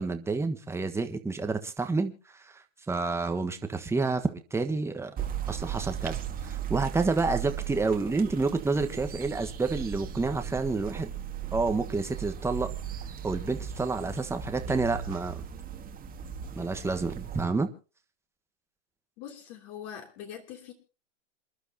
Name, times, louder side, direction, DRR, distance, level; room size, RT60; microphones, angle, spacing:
voice 1, 0.0-5.1 5.5-11.1 11.5-12.7 13.2-15.4 16.5-17.7, right 3 dB, 5° right, 7 dB, 1.3 m, -29 dB
sound 1, 5.2-17.4, right 9 dB, 25° right, 1.9 m, -37 dB
voice 2, 19.2-20.7, left 9 dB, 50° left, 3 dB, 3.2 m, -43 dB
27.5 x 11.5 x 2.9 m, 0.35 s
hypercardioid pair, 120°, 36 cm